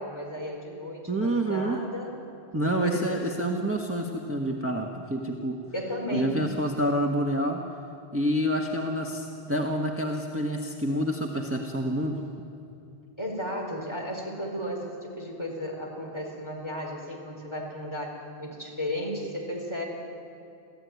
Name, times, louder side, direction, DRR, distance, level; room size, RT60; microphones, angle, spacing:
voice 1, 0.0-2.2 2.6-3.5 5.7-6.5 13.2-19.8, equal, 25° left, 0 dB, 4.7 m, -34 dB
voice 2, 1.1-1.8 2.5-5.6 6.1-7.6 8.1-12.2, right 1 dB, 15° right, 0 dB, 1.4 m, -28 dB
29.5 x 14.5 x 9.5 m, 2.6 s
omnidirectional pair, 1.1 m